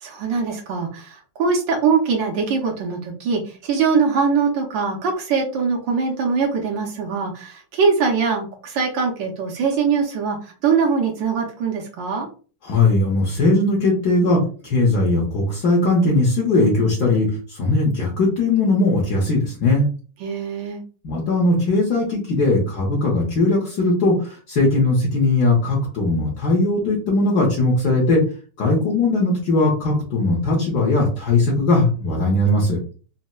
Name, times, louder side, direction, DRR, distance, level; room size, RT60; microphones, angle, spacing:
voice 1, 0.0-12.3 20.2-20.8, right 5 dB, 75° right, 1 dB, 1.3 m, -22 dB
voice 2, 12.6-19.9 21.0-28.2 28.6-32.8, left 2 dB, 65° left, -3 dB, 1.2 m, -19 dB
4.1 x 2.0 x 2.2 m, 0.38 s
omnidirectional pair, 2.1 m